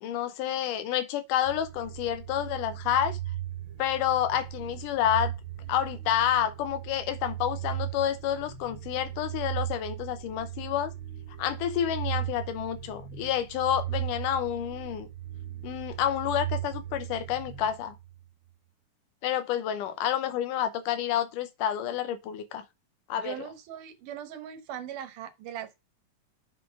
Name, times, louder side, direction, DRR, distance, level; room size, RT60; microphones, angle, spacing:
voice 1, 0.0-3.2 3.8-5.3 5.7-10.9 11.4-15.1 15.6-18.0 19.2-22.6 23.1-23.3, left 10 dB, 85° left, 2.4 m, -29 dB
sound 1, 1.4-18.2, right 13 dB, 60° right, 1.4 m, -37 dB
voice 2, 23.2-25.8, right 9 dB, 80° right, 2.6 m, -40 dB
8.1 x 4.1 x 4.6 m
omnidirectional pair, 3.7 m